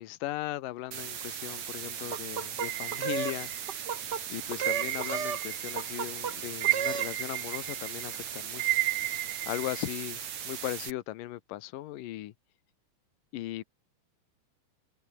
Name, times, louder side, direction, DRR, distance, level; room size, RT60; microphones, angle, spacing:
voice 1, 0.0-3.5 4.3-8.8 9.5-10.2 10.5-12.3 13.3-13.6, left 15 dB, 80° left, 2.7 m, -37 dB
sound 1, 0.9-10.9, right 8 dB, 60° right, 3.4 m, -39 dB
sound 2, 2.1-3.4 3.7-4.2 4.5-5.4 5.8-6.3 6.6-7.1, right 6 dB, 40° right, 1.8 m, -34 dB
sound 3, 2.6-3.9 4.6-5.9 6.2-9.9, right 17 dB, 80° right, 1.6 m, -33 dB
omnidirectional pair, 3.8 m